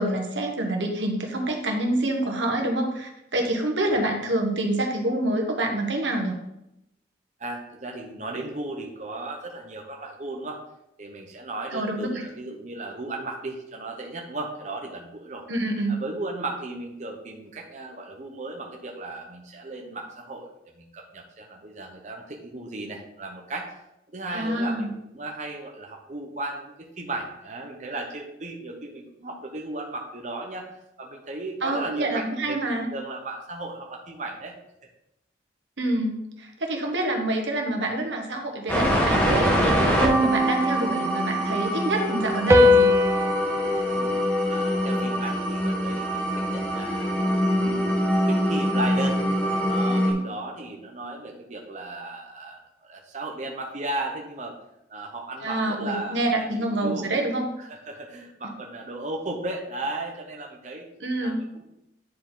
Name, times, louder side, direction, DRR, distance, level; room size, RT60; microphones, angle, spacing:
voice 1, 0.0-6.3 11.7-12.2 15.5-16.0 24.3-24.9 31.6-32.9 35.8-42.9 55.4-57.5 61.0-61.4, right 1 dB, 85° right, 2 dB, 1.4 m, -27 dB
voice 2, 7.4-10.6 11.0-15.4 15.9-23.8 24.1-34.6 43.9-44.2 44.5-49.2 49.7-54.6 54.9-57.1 57.6-60.9 61.2-61.6, right 2 dB, 40° right, 1 dB, 0.9 m, -36 dB
sound 1, 38.7-50.1, equal, 10° left, 1.4 m, -24 dB
sound 2, 40.0-41.8 42.5-45.1, left 2 dB, 15° right, 0.4 m, -22 dB
9.5 x 4.5 x 3.9 m, 0.83 s
head